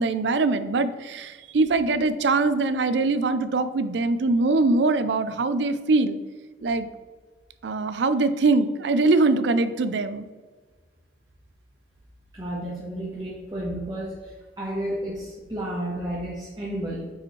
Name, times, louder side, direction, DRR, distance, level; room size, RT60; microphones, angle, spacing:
voice 1, 0.0-6.2 6.6-6.9 7.6-10.3, right 3 dB, 70° right, 12 dB, 0.5 m, -22 dB
voice 2, 12.3-14.3 14.6-17.1, right 1 dB, 25° right, -5 dB, 1.4 m, -32 dB
8.9 x 5.0 x 3.2 m, 1.4 s
head